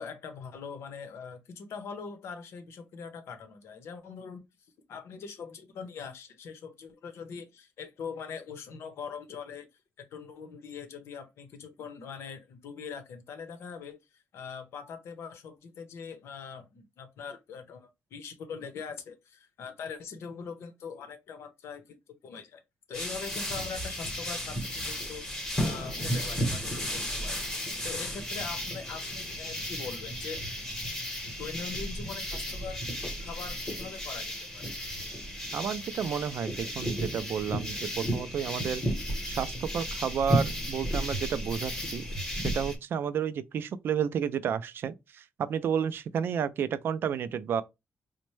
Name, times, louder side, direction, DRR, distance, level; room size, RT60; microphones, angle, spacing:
voice 1, 0.0-4.4 4.9-9.7 10.0-22.0 22.2-22.6 22.9-27.5 27.8-30.4 31.4-34.7, left 6 dB, 80° left, 0.7 m, -42 dB
sound 1, 22.9-42.8, equal, 10° left, 0.9 m, -33 dB
voice 2, 35.5-38.8 39.2-42.1 42.3-47.6, right 8 dB, 55° right, 0.3 m, -31 dB
4.2 x 2.1 x 3.0 m
wide cardioid pair, 170°, 4 cm